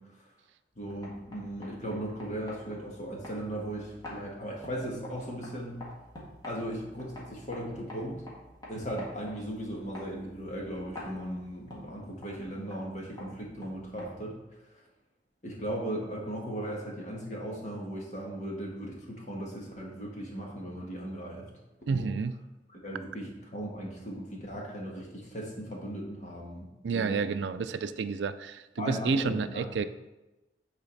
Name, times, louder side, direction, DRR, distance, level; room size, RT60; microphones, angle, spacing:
voice 1, 0.7-5.8 6.5-8.2 8.7-14.3 14.6-14.8 15.4-21.5 21.9-22.1 22.8-27.2 28.8-29.7, right 1 dB, 40° left, -2 dB, 1.5 m, -37 dB
sound 1, 0.7-14.5, left 1 dB, 20° left, 1.7 m, -49 dB
voice 2, 21.9-22.4 26.8-29.9, right 5 dB, 80° right, 12 dB, 0.4 m, -30 dB
8.9 x 4.1 x 4.0 m, 1.0 s
head